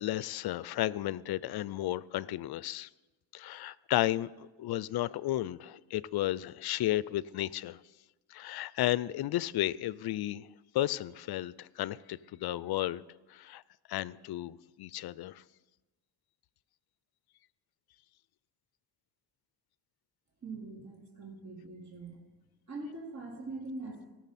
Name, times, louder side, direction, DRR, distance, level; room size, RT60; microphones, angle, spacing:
voice 1, 0.0-2.9 3.3-7.8 8.3-10.5 10.7-13.0 13.3-13.6 13.9-15.4, left 14 dB, 55° left, 20 dB, 0.5 m, -33 dB
voice 2, 20.4-22.2 22.7-24.1, right 2 dB, 35° right, -2 dB, 2.5 m, -42 dB
18.0 x 6.2 x 4.2 m, 1.1 s
cardioid pair, 80°, 46 cm